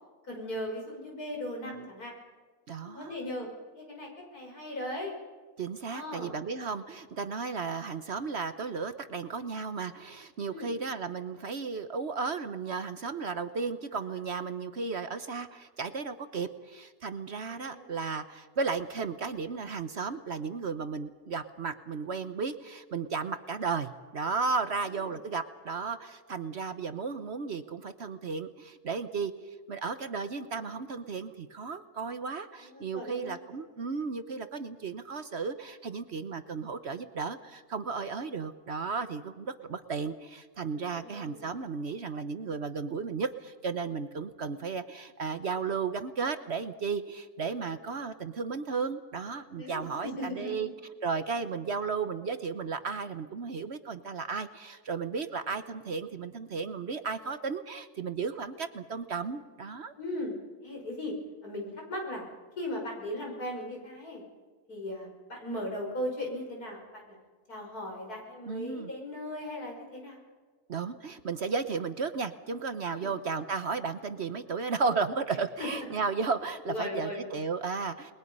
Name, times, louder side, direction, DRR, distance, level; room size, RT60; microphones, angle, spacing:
voice 1, 0.2-2.1 2.8-3.5 3.7-5.1 5.9-6.3 10.5-10.7 17.7-17.9 24.9-25.2 32.6-33.4 40.7-41.5 49.6-50.7 60.0-60.4 60.6-61.2 61.4-62.3 62.6-64.2 64.7-67.2 67.5-70.2 72.9-73.2 76.7-77.4, left 1 dB, 80° left, 0 dB, 6.0 m, -38 dB
voice 2, 2.7-3.2 5.6-29.3 29.7-50.7 51.0-59.9 68.5-68.9 70.7-78.1, right 5 dB, 50° right, 11 dB, 1.1 m, -34 dB
29.5 x 21.0 x 5.4 m, 1.4 s
omnidirectional pair, 1.6 m